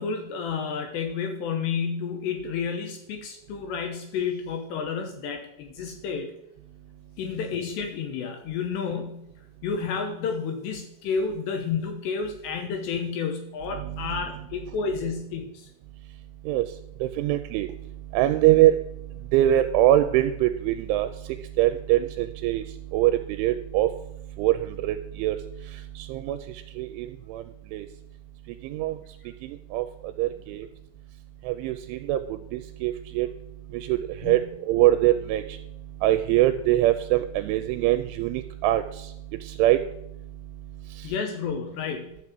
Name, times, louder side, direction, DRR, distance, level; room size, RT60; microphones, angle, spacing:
voice 1, 0.0-6.3 7.2-9.3 9.6-15.7 34.2-34.5 41.0-42.2, left 5 dB, 75° left, 5 dB, 2.8 m, -31 dB
voice 2, 13.8-14.2 16.5-16.7 17.0-17.7 18.1-18.8 19.3-21.1 21.6-22.6 22.9-23.9 24.4-25.4 26.0-26.4 26.8-27.4 27.7-27.9 28.6-29.0 29.4-29.9 30.2-30.7 31.5-32.2 32.5-33.3 33.7-34.0 34.2-35.6 36.0-39.1 39.4-39.8 41.0-41.1, right 14 dB, 85° right, 10 dB, 2.9 m, -23 dB
12.0 x 6.2 x 7.6 m, 0.81 s
omnidirectional pair, 5.7 m